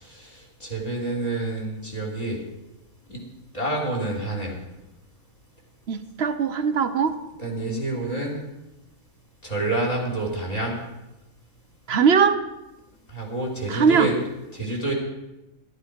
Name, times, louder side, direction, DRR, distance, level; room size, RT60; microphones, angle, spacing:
voice 1, 0.0-2.4 3.1-3.2 3.5-4.6 7.4-8.4 9.4-10.8 13.1-14.1 14.5-14.9, right 2 dB, 25° left, 3.4 m, -28 dB
voice 2, 5.9-7.1 11.9-12.4 13.7-14.1, right 6 dB, 55° right, 0.9 m, -20 dB
13.5 x 12.0 x 5.0 m
omnidirectional pair, 1.4 m